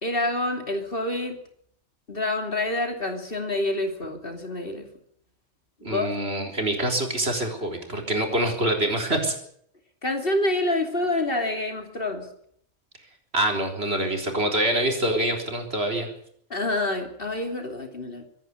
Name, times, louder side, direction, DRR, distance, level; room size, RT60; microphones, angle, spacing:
voice 1, 0.0-1.4 2.1-4.9 5.8-6.2 10.0-12.3 16.5-18.2, left 2 dB, 50° left, 5 dB, 3.1 m, -27 dB
voice 2, 5.8-9.3 13.3-16.1, right 1 dB, 55° right, 3 dB, 4.4 m, -25 dB
25.0 x 11.0 x 9.8 m, 0.67 s
omnidirectional pair, 1.3 m